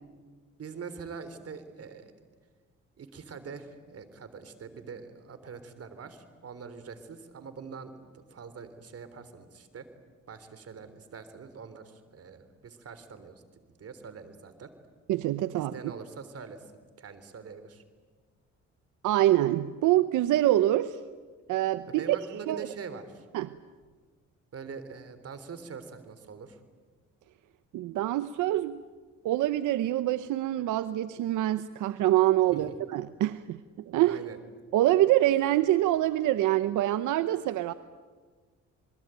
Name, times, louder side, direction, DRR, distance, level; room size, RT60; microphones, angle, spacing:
voice 1, 0.6-2.1 3.0-9.9 10.3-13.4 13.8-14.7 15.5-16.7 17.0-17.8 21.9-23.3 24.5-26.6 32.5-32.7 34.0-34.4, right 5 dB, 50° right, 11 dB, 3.6 m, -43 dB
voice 2, 15.1-15.7 19.0-21.0 21.5-22.2 22.5-22.7 23.3-23.5 27.7-28.8 29.2-33.6 33.9-34.2 34.7-37.7, right 14 dB, 85° right, 13 dB, 0.9 m, -25 dB
27.5 x 22.0 x 9.2 m, 1.4 s
cardioid pair, 90°, 30 cm